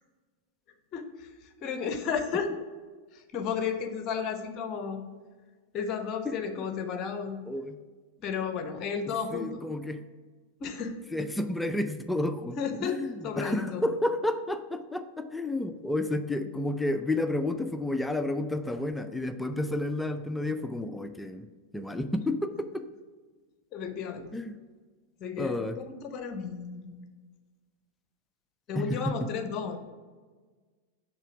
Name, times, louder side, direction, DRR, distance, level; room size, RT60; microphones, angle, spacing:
voice 1, 0.9-2.5 3.1-5.1 5.7-7.4 8.2-9.6 10.6-11.0 12.6-13.9 23.7-24.4 25.2-25.6 25.9-27.1 28.7-29.8, left 6 dB, 35° left, 8 dB, 0.7 m, -33 dB
voice 2, 7.5-7.8 9.3-10.0 11.1-21.5 21.7-22.8 24.3-24.6 25.4-25.8 28.8-29.2, left 1 dB, 5° left, 9 dB, 0.3 m, -31 dB
5.7 x 3.4 x 5.8 m, 1.4 s
figure-of-eight pair, 90°, 0 cm